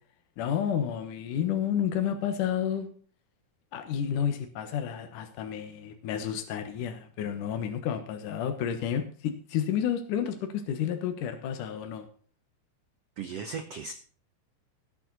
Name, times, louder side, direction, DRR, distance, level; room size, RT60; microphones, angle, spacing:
voice 1, 0.4-2.9 3.7-12.1, left 9 dB, 65° left, 7 dB, 2.7 m, -30 dB
voice 2, 13.2-13.9, right 5 dB, 65° right, 7 dB, 1.6 m, -36 dB
17.0 x 9.2 x 4.1 m, 0.43 s
omnidirectional pair, 4.3 m